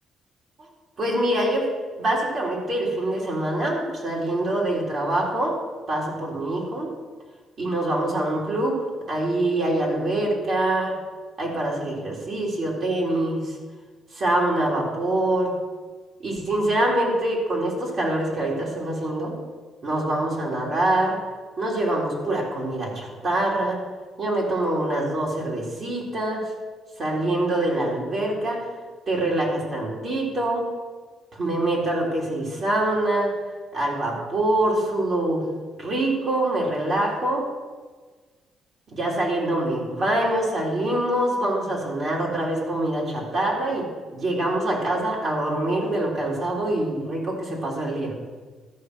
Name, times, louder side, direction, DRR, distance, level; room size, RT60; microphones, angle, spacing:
voice 1, 1.0-1.7 2.0-5.5 5.9-6.9 7.6-8.8 9.1-10.9 11.4-13.6 14.1-15.5 16.2-19.4 19.8-21.2 21.6-23.8 24.2-26.5 27.0-28.7 29.1-30.7 31.3-33.3 33.7-35.4 35.8-37.4 38.9-48.1, right 1 dB, 50° right, -3 dB, 3.7 m, -25 dB
13.0 x 6.7 x 6.3 m, 1.4 s
cardioid pair, 90°, 0 cm